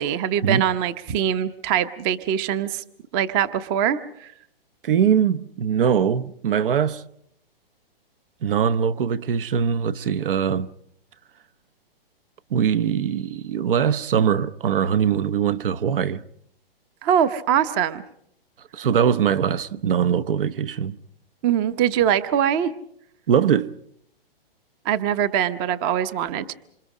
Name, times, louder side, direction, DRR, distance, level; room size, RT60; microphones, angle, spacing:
voice 1, 0.0-2.8 3.1-4.3 17.0-18.0 21.4-22.7 24.8-26.5, right 9 dB, 25° right, 0.8 m, -23 dB
voice 2, 4.8-7.0 8.4-10.7 12.5-16.2 18.7-21.0 23.3-23.7, right 8 dB, 65° right, 1.0 m, -22 dB
27.0 x 27.0 x 4.9 m
hypercardioid pair, 155°, 30 cm